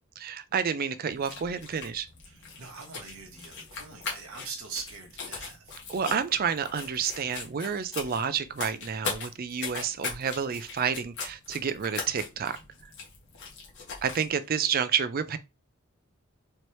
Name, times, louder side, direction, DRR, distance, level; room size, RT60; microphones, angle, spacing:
voice 1, 0.2-2.1 5.9-12.6 14.0-15.4, right 7 dB, 45° right, 0.4 m, -29 dB
sound 1, 1.1-14.3, left 4 dB, 55° left, 1.4 m, -40 dB
voice 2, 2.3-5.7, right 5 dB, 85° right, 1.0 m, -42 dB
4.4 x 2.8 x 3.1 m
head